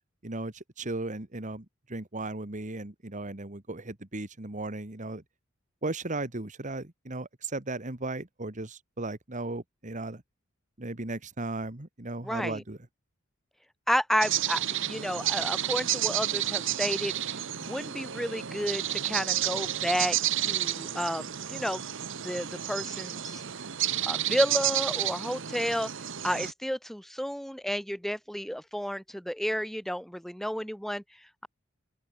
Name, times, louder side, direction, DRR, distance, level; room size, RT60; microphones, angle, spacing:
voice 1, 0.2-5.2 5.8-10.2 10.8-12.8, right 2 dB, 40° right, 1.9 m, -36 dB
voice 2, 12.2-12.6 13.9-21.9 22.2-23.4 24.0-25.9 26.2-31.0, equal, ahead, 2.4 m, -31 dB
sound 1, 14.2-26.5, right 12 dB, 65° right, 1.2 m, -31 dB
open air
head